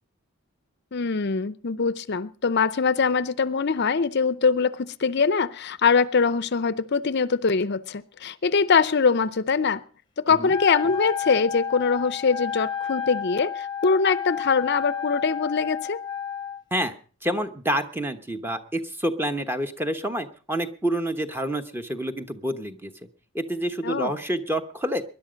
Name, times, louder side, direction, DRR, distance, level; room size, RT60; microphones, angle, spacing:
voice 1, 0.9-9.8 10.2-16.0 23.8-24.1, left 5 dB, 50° left, 16 dB, 0.6 m, -23 dB
Wind instrument woodwind instrument, 10.5-16.6, left 8 dB, 20° left, 0.9 m, -31 dB
voice 2, 17.2-22.9 23.3-25.0, right 1 dB, 10° right, 8 dB, 1.0 m, -28 dB
20.5 x 11.0 x 5.2 m, 0.40 s
head